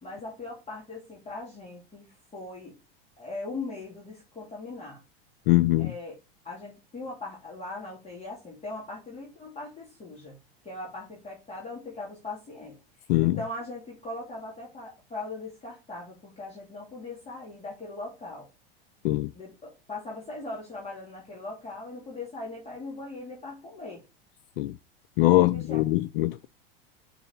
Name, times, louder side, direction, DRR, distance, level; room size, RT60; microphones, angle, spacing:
voice 1, 0.0-2.8 3.2-5.0 5.8-6.2 6.4-18.5 19.3-24.0 25.3-25.8, left 2 dB, 20° left, 2.6 m, -40 dB
voice 2, 5.5-5.9 13.1-13.4 19.0-19.3 24.6-24.7 25.2-26.5, left 18 dB, 70° left, 0.5 m, -22 dB
5.5 x 4.1 x 5.8 m
hypercardioid pair, 105°, 29 cm